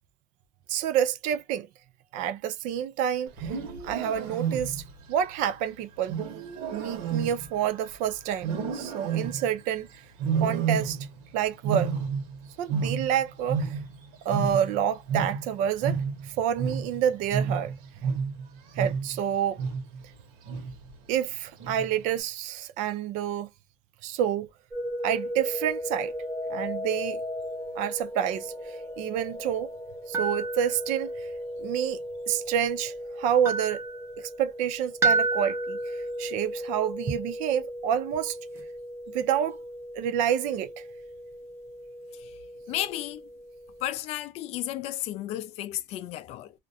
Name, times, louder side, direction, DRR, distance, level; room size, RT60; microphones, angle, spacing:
voice 1, 0.7-1.7 2.1-3.5 3.8-6.2 6.7-9.9 10.4-11.0 11.3-11.9 12.6-13.8 14.2-17.7 18.8-19.6 21.1-23.5 24.0-24.5 25.0-26.1 26.5-27.2 27.8-29.7 30.1-31.3 31.6-32.0 32.3-33.8 34.2-38.4 39.1-39.6 39.9-40.8, right 9 dB, 70° right, 0.5 m, -28 dB
Wild animals, 3.3-5.0 6.1-8.0 8.4-9.6 10.2-11.3 11.5-14.0 14.3-19.2 19.6-20.0 20.5-20.9 21.6-22.1, right 6 dB, 85° right, 1.1 m, -30 dB
sound 1, 24.7-43.8, right 2 dB, 20° right, 0.6 m, -34 dB
sound 2, 25.4-34.5 35.0-35.5, left 3 dB, 10° left, 0.9 m, -42 dB
voice 2, 42.7-43.2 43.8-46.5, left 13 dB, 50° left, 0.4 m, -33 dB
2.5 x 2.1 x 2.6 m
cardioid pair, 175°, 14 cm